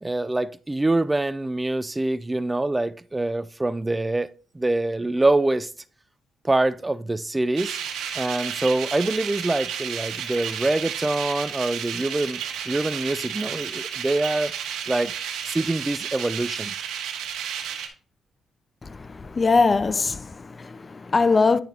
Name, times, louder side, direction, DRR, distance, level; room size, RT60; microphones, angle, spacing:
voice 1, 0.0-4.3 4.5-5.7 6.4-7.8 8.2-14.5 14.9-15.1 15.4-16.7, right 2 dB, 20° right, 0.4 m, -25 dB
sound 1, 7.5-17.9, right 8 dB, 85° right, 1.3 m, -32 dB
voice 2, 18.8-21.6, left 4 dB, 35° left, 0.5 m, -22 dB
10.0 x 6.4 x 2.8 m
supercardioid pair, 65°, 0 cm